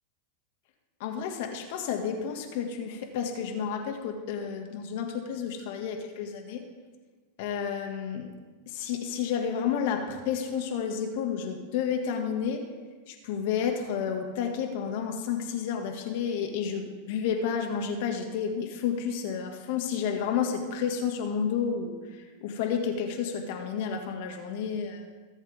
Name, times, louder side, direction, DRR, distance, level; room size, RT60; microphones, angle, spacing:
voice 1, 1.0-6.6 7.4-8.3 8.7-12.6 13.1-22.0 22.4-25.1, left 7 dB, 65° left, 4 dB, 2.2 m, -31 dB
22.5 x 7.9 x 3.7 m, 1.4 s
hypercardioid pair, 120°, 0 cm